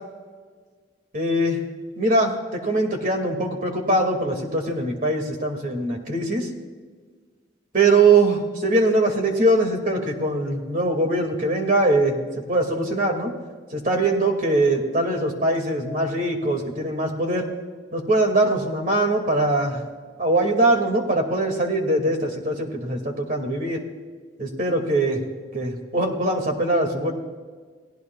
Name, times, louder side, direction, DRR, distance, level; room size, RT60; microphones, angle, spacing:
voice 1, 1.1-1.6 2.0-6.5 7.7-13.3 13.7-17.5 17.9-19.8 20.2-23.8 24.4-25.2 25.5-27.1, right 2 dB, 50° right, 3 dB, 2.3 m, -22 dB
29.0 x 17.5 x 2.4 m, 1.5 s
head